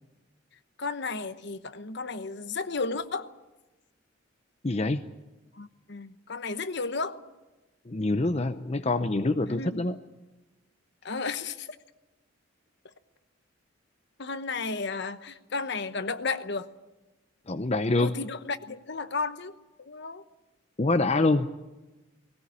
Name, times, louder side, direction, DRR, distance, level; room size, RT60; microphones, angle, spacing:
voice 1, 0.8-3.3 5.5-7.2 9.5-9.9 11.0-11.7 14.2-16.7 18.0-20.2, left 4 dB, 60° left, 11 dB, 1.1 m, -33 dB
voice 2, 4.6-5.0 7.9-10.0 17.5-18.1 20.8-21.5, left 2 dB, 30° left, 8 dB, 0.7 m, -25 dB
19.5 x 18.0 x 9.8 m, 1.1 s
head